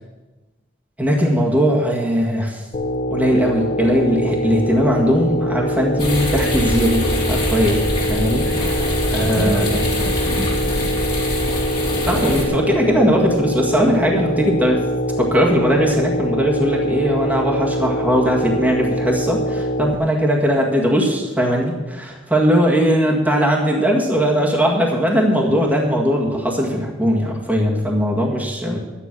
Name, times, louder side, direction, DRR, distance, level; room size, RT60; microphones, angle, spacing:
voice 1, 1.0-2.6 3.1-7.8 8.1-8.8 9.1-9.8 10.3-10.4 12.1-14.8 15.2-28.8, equal, 10° right, -2 dB, 1.8 m, -19 dB
sound 1, 2.7-20.0, equal, 40° left, 1.0 m, -23 dB
sound 2, 6.0-12.4, left 1 dB, 25° left, 3.5 m, -24 dB
voice 2, 8.4-8.8 9.1-11.1, equal, 85° right, 1 dB, 3.7 m, -30 dB
11.5 x 10.0 x 6.1 m, 1.2 s
head